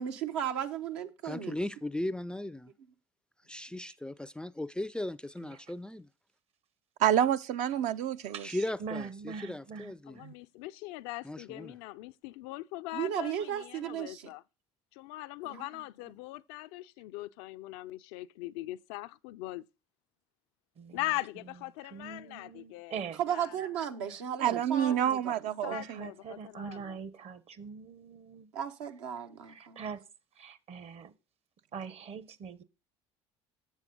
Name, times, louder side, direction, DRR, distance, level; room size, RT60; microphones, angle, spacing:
voice 1, 0.0-1.6 12.9-14.3 15.4-15.7 23.2-25.6 28.5-29.8, right 9 dB, 85° right, 0.9 m, -35 dB
voice 2, 1.2-2.7 3.5-6.1 8.4-10.2 11.2-11.8, left 1 dB, 5° left, 0.3 m, -37 dB
voice 3, 7.0-8.5 10.2-10.3 24.4-26.0, right 10 dB, 60° right, 0.4 m, -28 dB
voice 4, 8.8-10.3 20.8-21.0 21.8-23.2 24.4-24.6 25.7-28.5 29.5-30.0 30.4-31.1 31.7-32.6, right 6 dB, 45° right, 0.8 m, -42 dB
voice 5, 10.1-14.4 14.9-19.6 20.9-23.0 23.3-23.6 24.8-25.0 25.6-27.0, left 18 dB, 75° left, 0.4 m, -41 dB
7.5 x 7.3 x 3.8 m
hypercardioid pair, 75°, 14 cm